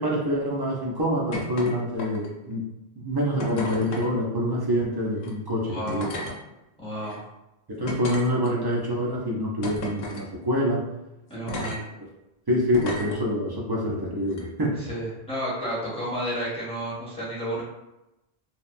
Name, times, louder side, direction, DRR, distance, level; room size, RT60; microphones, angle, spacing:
voice 1, 0.0-2.6 3.0-6.1 7.7-10.8 11.5-11.7 12.5-14.8, equal, 40° right, -4 dB, 0.3 m, -26 dB
sound 1, 1.3-1.7 2.0-2.4 3.4-4.1 5.1-5.3 5.9-6.4 7.0-7.2 7.9-8.8 9.6-10.3 11.5-11.8 12.7-13.2 14.3-14.4, left 2 dB, 85° left, 0.9 m, -33 dB
voice 2, 5.6-6.0 6.8-7.2 11.3-11.8 14.8-17.6, equal, 5° left, -8 dB, 0.9 m, -31 dB
2.8 x 2.1 x 2.5 m, 0.94 s
omnidirectional pair, 1.1 m